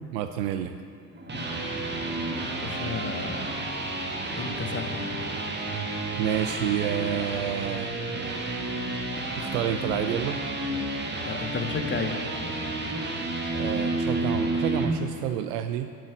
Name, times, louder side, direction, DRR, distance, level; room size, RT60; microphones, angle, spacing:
voice 1, 0.1-0.8 6.2-7.9 9.4-10.4 13.5-15.9, right 10 dB, 75° right, 8 dB, 0.5 m, -29 dB
sound 1, 1.0-14.9, right 2 dB, 20° right, 1.4 m, -31 dB
voice 2, 2.4-3.6 4.3-5.1 11.2-12.2, left 4 dB, 25° left, 5 dB, 1.0 m, -33 dB
7.5 x 5.6 x 6.9 m, 2.3 s
hypercardioid pair, 60°, 50 cm